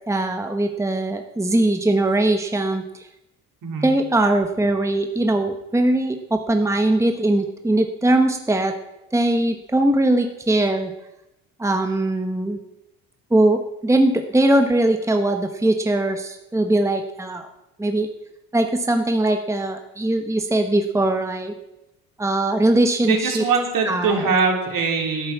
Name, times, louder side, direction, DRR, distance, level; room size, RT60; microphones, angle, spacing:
voice 1, 0.1-3.0 3.8-8.8 9.1-10.9 11.6-12.6 13.3-17.5 17.8-18.1 18.5-21.5 22.2-23.4 23.8-24.4, right 1 dB, 10° right, 6 dB, 1.2 m, -20 dB
voice 2, 23.0-25.3, right 5 dB, 60° right, 1 dB, 3.7 m, -22 dB
12.0 x 9.4 x 7.3 m, 0.92 s
supercardioid pair, 70°, 37 cm